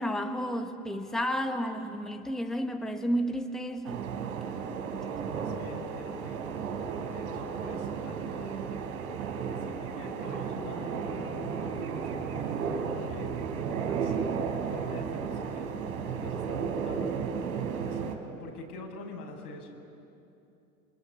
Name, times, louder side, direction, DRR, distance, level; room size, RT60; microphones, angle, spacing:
voice 1, 0.0-4.1, equal, ahead, 5 dB, 1.4 m, -31 dB
sound 1, 3.8-18.2, right 6 dB, 70° right, 3.9 m, -33 dB
voice 2, 5.4-6.5 7.0-8.6 9.6-13.4 13.7-17.2 17.7-19.8, left 3 dB, 85° left, 1 dB, 6.4 m, -46 dB
27.5 x 23.5 x 8.9 m, 2.8 s
hypercardioid pair, 110°, 45 cm